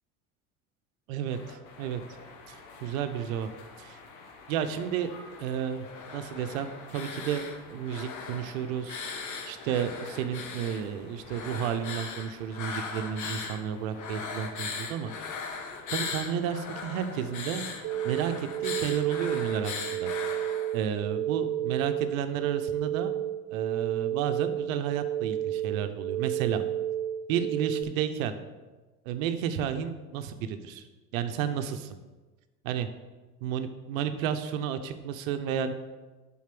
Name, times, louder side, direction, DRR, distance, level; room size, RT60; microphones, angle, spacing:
voice 1, 1.1-2.0 2.5-3.5 3.8-4.0 4.5-5.1 5.4-5.8 6.1-9.0 9.5-15.1 15.9-17.7 18.0-20.1 20.7-23.1 23.5-26.6 27.3-28.4 29.1-30.9 31.1-32.0 32.6-32.9 33.4-35.7, right 8 dB, 75° right, 9 dB, 0.8 m, -32 dB
sound 1, 1.3-19.4, left 4 dB, 70° left, 1.3 m, -51 dB
sound 2, 5.8-7.6 7.8-10.8 11.3-13.6 14.0-20.8, left 5 dB, 45° left, 1.2 m, -38 dB
sound 3, 17.8-27.8, right 12 dB, 40° right, 0.4 m, -31 dB
7.3 x 4.2 x 5.9 m, 1.2 s
hypercardioid pair, 75°, 40 cm